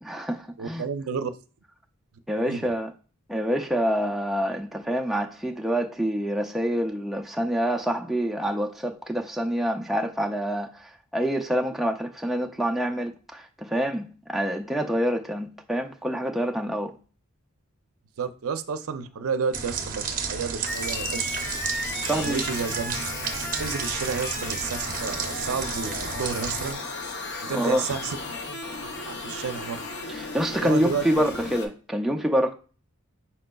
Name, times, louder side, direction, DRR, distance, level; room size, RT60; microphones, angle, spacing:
voice 1, 0.0-0.8 2.3-2.9 3.3-17.0 22.0-22.4 27.5-27.8 30.1-32.5, equal, ahead, 1 dB, 0.3 m, -27 dB
voice 2, 0.6-1.3 2.4-2.7 18.2-21.4 22.0-23.0 23.4-26.8 27.4-28.2 28.5-29.8 30.6-31.2, right 6 dB, 90° right, 9 dB, 0.5 m, -31 dB
sound 1, 19.5-26.7, right 6 dB, 40° right, 0.6 m, -32 dB
sound 2, 20.7-31.7, left 3 dB, 55° left, 0.6 m, -34 dB
5.1 x 4.2 x 2.3 m, 0.38 s
head